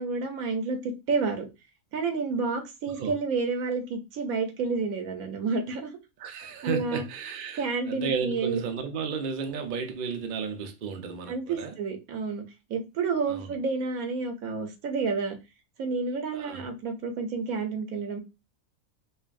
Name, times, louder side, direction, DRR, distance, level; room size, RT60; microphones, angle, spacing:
voice 1, 0.0-1.5 1.9-5.9 6.6-7.0 7.6-8.6 11.3-12.4 12.7-15.4 15.8-18.2, right 4 dB, 80° right, 1.2 m, -30 dB
voice 2, 6.2-11.8 13.3-13.5 16.3-16.6, right 6 dB, 55° right, 0.5 m, -33 dB
5.4 x 2.3 x 2.4 m
omnidirectional pair, 1.5 m